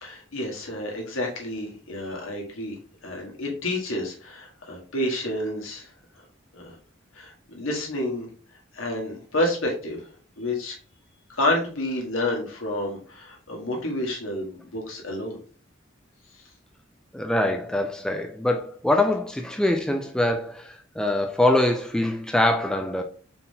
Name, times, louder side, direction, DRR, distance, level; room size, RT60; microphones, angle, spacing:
voice 1, 0.0-2.8 3.0-5.9 6.5-6.7 7.1-8.3 8.7-10.0 10.4-10.7 11.3-15.4, left 1 dB, 85° left, 1.4 m, -29 dB
voice 2, 17.1-23.0, left 1 dB, 5° left, 0.3 m, -24 dB
4.2 x 3.6 x 2.7 m
head